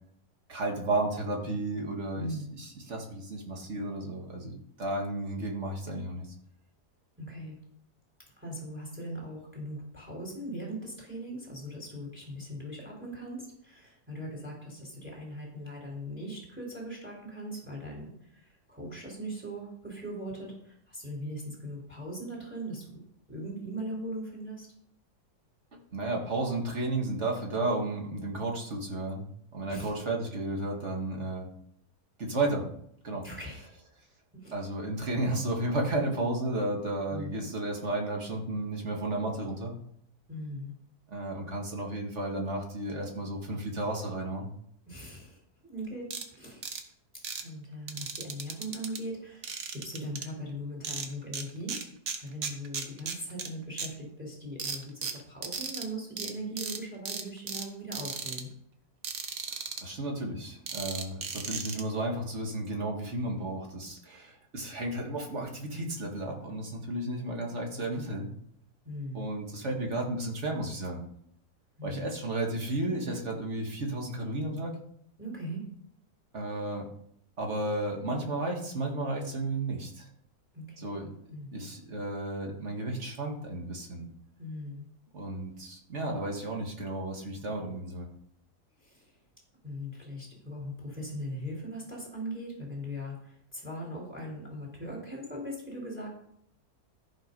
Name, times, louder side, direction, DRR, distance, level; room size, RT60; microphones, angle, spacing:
voice 1, 0.5-6.3 25.7-29.2 29.5-31.5 32.2-32.7 33.0-33.3 34.5-39.8 41.1-44.5 59.8-68.3 69.1-71.0 71.8-74.7 76.3-76.9 77.4-80.1 80.8-81.1 81.5-84.1 85.1-88.1, right 2 dB, 45° right, 0 dB, 2.2 m, -33 dB
voice 2, 2.1-2.5 7.2-7.6 8.4-23.0 23.3-24.7 29.7-29.9 33.2-33.6 34.3-34.5 37.1-37.5 40.3-40.7 44.9-46.7 47.4-51.8 52.2-58.5 68.8-69.2 71.8-72.1 75.2-75.6 80.5-81.5 84.4-84.9 88.8-89.1 89.6-96.2, equal, 5° right, -1 dB, 3.7 m, -40 dB
sound 1, 46.1-46.2 46.6-46.8 47.2-47.4 47.9-49.0 49.4-50.3 50.8-51.4 51.7-53.5 53.8-53.9 54.6-55.8 56.2-56.3 56.6-56.8 57.1-57.6 57.9-58.4 59.0-59.8 60.7-61.8, right 6 dB, 60° right, 1.5 m, -36 dB
14.0 x 5.8 x 5.3 m, 0.69 s
omnidirectional pair, 1.7 m